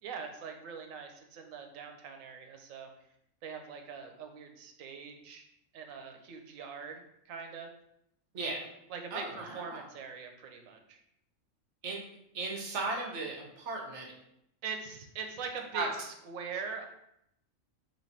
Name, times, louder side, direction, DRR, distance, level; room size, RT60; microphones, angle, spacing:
voice 1, 0.0-2.9 3.4-5.4 5.7-7.7 8.9-11.0 14.6-16.9, right 6 dB, 90° right, 4 dB, 1.0 m, -42 dB
voice 2, 8.3-8.7 9.1-9.8 11.8-12.0 12.3-14.1 15.7-15.9, right 3 dB, 65° right, 0 dB, 1.1 m, -36 dB
3.2 x 2.8 x 4.1 m, 0.77 s
omnidirectional pair, 1.4 m